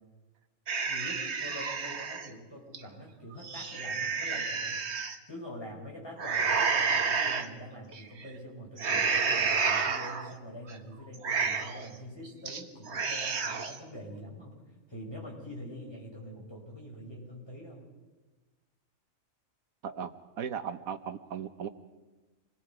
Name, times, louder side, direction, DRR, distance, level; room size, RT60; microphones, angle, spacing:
sound 1, 0.7-2.3 2.7-2.8 3.3-5.2 6.2-7.5 7.9-8.3 8.8-10.3 10.7-10.8 11.1-11.9 12.3-12.6 12.9-13.8, right 5 dB, 55° right, 1.5 m, -30 dB
voice 1, 0.9-4.8 5.3-14.6 14.9-17.9, equal, 15° left, -3 dB, 6.4 m, -45 dB
voice 2, 19.8-21.7, right 7 dB, 85° right, 10 dB, 1.4 m, -37 dB
27.5 x 21.0 x 4.8 m, 1.2 s
omnidirectional pair, 1.4 m